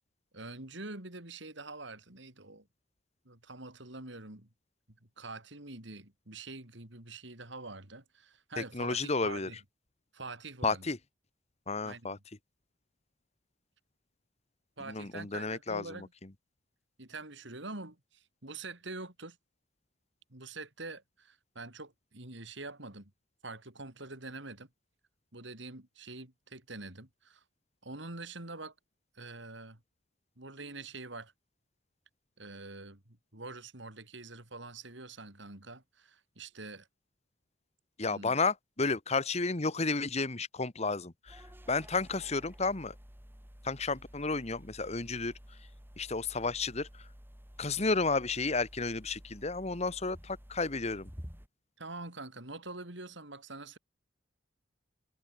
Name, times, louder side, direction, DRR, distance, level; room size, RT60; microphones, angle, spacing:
voice 1, 0.3-2.7 3.3-4.5 5.2-9.6 10.1-10.9 11.8-12.2 14.8-16.1 17.0-19.4 20.3-23.1 23.4-24.7 25.3-27.4 27.8-28.7 29.2-29.8 30.4-31.3 32.4-36.9 38.1-38.3 51.8-53.8, right 3 dB, 65° right, 3.7 m, -45 dB
voice 2, 8.6-9.5 10.6-11.0 11.7-12.2 14.9-16.1 38.0-41.4 41.7-42.9 43.6-45.3 46.0-46.9 47.6-51.1, left 3 dB, 35° left, 1.3 m, -32 dB
sound 1, 41.3-51.5, equal, 10° right, 5.0 m, -52 dB
head